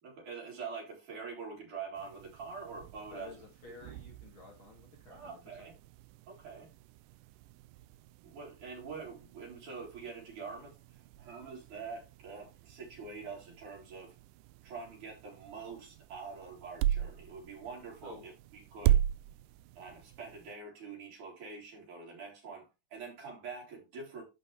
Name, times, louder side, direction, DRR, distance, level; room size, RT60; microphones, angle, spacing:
voice 1, 0.0-3.3 5.1-5.7 6.3-6.7 8.2-14.1 14.6-19.0 19.8-24.2, right 5 dB, 65° right, 5.0 m, -45 dB
sound 1, 1.9-20.5, right 12 dB, 80° right, 2.1 m, -38 dB
voice 2, 3.1-5.7 18.0-18.2, left 4 dB, 40° left, 2.6 m, -52 dB
11.5 x 5.4 x 3.3 m
omnidirectional pair, 3.8 m